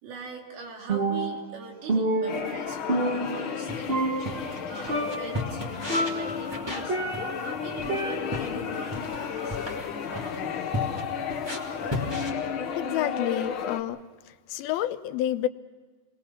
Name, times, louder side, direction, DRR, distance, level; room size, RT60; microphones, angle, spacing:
voice 1, 0.0-4.2 4.7-7.0 7.4-11.0, right 4 dB, 80° right, 1 dB, 4.9 m, -43 dB
Percussion, 0.9-1.6 1.9-3.6 3.9-4.6 4.9-5.4 5.9-7.5 7.9-8.6, right 1 dB, 50° right, 0.7 m, -28 dB
sound 1, 2.3-13.8, left 7 dB, 70° left, 1.2 m, -33 dB
sound 2, 3.7-12.3, left 1 dB, 5° right, 2.6 m, -37 dB
voice 2, 12.7-14.0 14.5-15.5, left 12 dB, 85° left, 11 dB, 2.7 m, -29 dB
28.5 x 21.0 x 5.9 m, 1.4 s
omnidirectional pair, 4.3 m